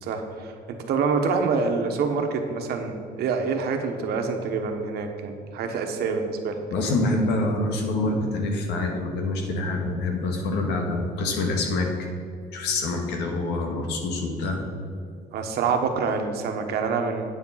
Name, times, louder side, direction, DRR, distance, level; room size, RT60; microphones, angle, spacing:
voice 1, 0.0-6.6 15.3-17.3, right 5 dB, 70° right, 5 dB, 1.3 m, -26 dB
voice 2, 6.7-11.9 12.5-14.8, left 2 dB, 85° left, 2 dB, 1.7 m, -26 dB
9.0 x 7.3 x 5.7 m, 2.3 s
cardioid pair, 110°, 17 cm